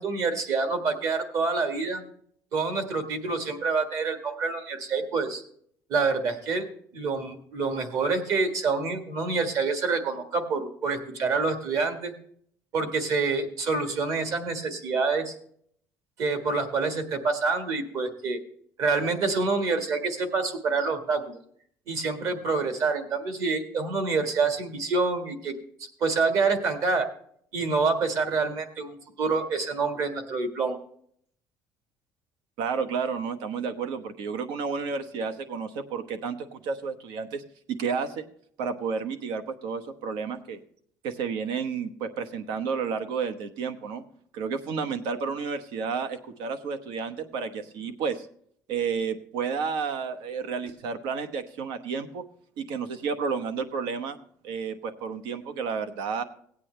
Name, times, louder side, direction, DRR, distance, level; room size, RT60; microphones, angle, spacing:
voice 1, 0.0-2.0 2.5-5.4 5.9-6.6 6.9-12.1 12.7-15.3 16.2-18.4 18.8-21.4 21.9-25.5 26.0-27.0 27.5-30.8, right 4 dB, 50° right, 6 dB, 1.6 m, -27 dB
voice 2, 32.6-37.4 37.7-38.2 38.6-40.6 41.0-44.0 44.3-48.3 48.7-52.2 52.6-54.2 54.4-56.2, right 5 dB, 85° right, 10 dB, 1.1 m, -31 dB
17.5 x 8.5 x 3.2 m, 0.63 s
cardioid pair, 175°, 7 cm